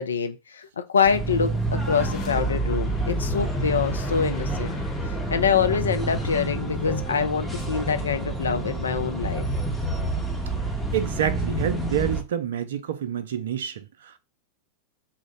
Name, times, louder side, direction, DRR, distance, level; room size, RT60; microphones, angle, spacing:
voice 1, 0.0-4.8 5.0-9.5, left 6 dB, 70° left, 0.4 m, -25 dB
sound 1, 1.0-12.2, right 1 dB, ahead, 0.7 m, -28 dB
sound 2, 1.5-6.9, right 1 dB, 30° left, 1.0 m, -34 dB
voice 2, 10.9-14.2, right 9 dB, 60° right, 0.4 m, -28 dB
2.7 x 2.0 x 3.9 m
figure-of-eight pair, 90°, 0 cm